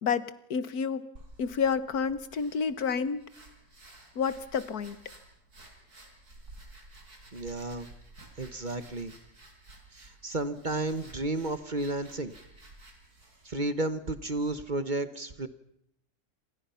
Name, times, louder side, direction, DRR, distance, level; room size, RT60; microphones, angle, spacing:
voice 1, 0.0-1.1 1.4-3.2 4.1-5.0, left 6 dB, 75° left, 15 dB, 1.7 m, -29 dB
sound 1, 1.2-14.6, right 2 dB, 85° right, 5.3 m, -53 dB
voice 2, 7.3-7.9 8.4-9.1 9.9-12.3 13.4-15.5, right 2 dB, 35° right, 12 dB, 1.2 m, -32 dB
28.0 x 27.0 x 5.7 m, 0.75 s
omnidirectional pair, 1.6 m